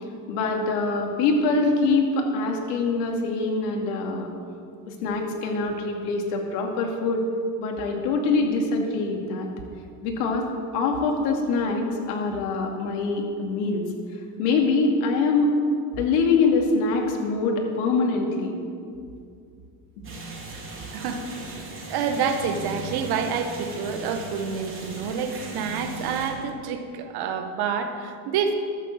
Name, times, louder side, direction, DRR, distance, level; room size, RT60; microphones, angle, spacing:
voice 1, 0.3-4.3 4.9-7.2 7.6-9.5 10.0-10.5 10.7-13.9 14.4-15.6 16.0-18.5, left 3 dB, 70° left, 2 dB, 2.4 m, -24 dB
sound 1, 20.0-26.3, right 3 dB, 25° right, 3.3 m, -38 dB
voice 2, 20.9-21.2 21.9-28.5, right 6 dB, 50° right, 6 dB, 1.6 m, -28 dB
12.0 x 7.6 x 7.4 m, 2.3 s
supercardioid pair, 100°, 47 cm